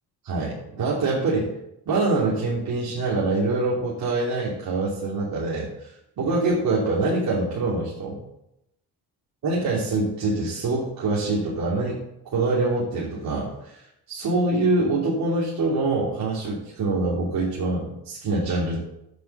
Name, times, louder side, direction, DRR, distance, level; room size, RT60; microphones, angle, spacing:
voice 1, 0.2-1.5 1.9-5.9 6.2-8.2 9.4-13.8 14.1-18.8, right 2 dB, 60° right, -5 dB, 3.3 m, -25 dB
9.4 x 7.8 x 6.9 m, 0.83 s
cardioid pair, 105°, 39 cm